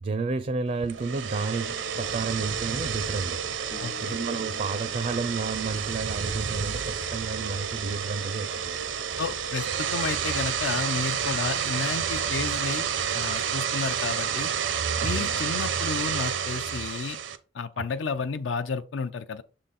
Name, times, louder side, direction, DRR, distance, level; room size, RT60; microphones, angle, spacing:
voice 1, 0.0-3.4 3.8-8.8 15.0-15.3 17.8-17.9, right 4 dB, 40° right, 0.4 m, -31 dB
sound 1, 0.8-17.4, right 7 dB, 80° right, 0.7 m, -30 dB
sound 2, 3.7-6.9, left 6 dB, 55° left, 1.0 m, -50 dB
voice 2, 3.8-4.1 9.2-12.8 13.1-14.5 15.0-17.2 17.5-19.4, left 4 dB, 80° left, 0.5 m, -32 dB
6.7 x 3.8 x 4.1 m
head